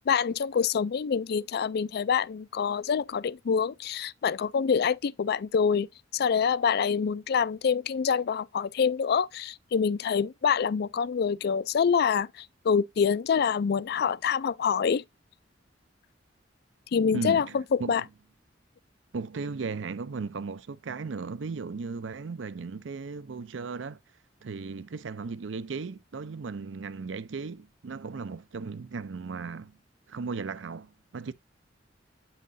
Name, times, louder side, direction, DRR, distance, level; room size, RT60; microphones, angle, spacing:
voice 1, 0.1-5.9 6.1-15.0 16.9-18.0, left 6 dB, 60° left, 0.4 m, -26 dB
voice 2, 17.1-18.1 19.1-24.0 24.4-29.8 30.1-31.3, right 4 dB, 90° right, 0.5 m, -36 dB
8.4 x 5.7 x 2.6 m
head